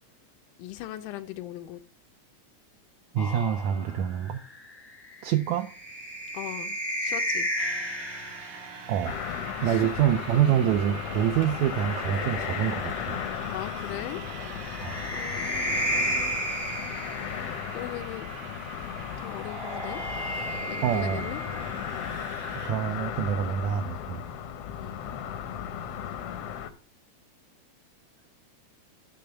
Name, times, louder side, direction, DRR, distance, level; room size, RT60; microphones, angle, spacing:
voice 1, 0.6-1.8 6.3-7.5 9.6-9.9 13.5-14.2 15.1-16.4 17.7-18.3 19.2-20.0 20.7-21.4 24.7-25.0, left 14 dB, 90° left, 2.1 m, -39 dB
voice 2, 3.1-4.4 5.2-5.7 8.9-13.2 14.8-15.0 20.8-21.3 22.6-24.3, right 10 dB, 80° right, 1.8 m, -26 dB
sound 1, 3.2-8.7 10.1-13.1 14.4-17.9 19.1-22.1, equal, 20° left, 0.5 m, -34 dB
sound 2, 7.6-22.7, right 5 dB, 55° right, 1.2 m, -44 dB
sound 3, 9.0-26.7, left 9 dB, 70° left, 1.4 m, -36 dB
10.5 x 3.5 x 6.7 m
omnidirectional pair, 3.5 m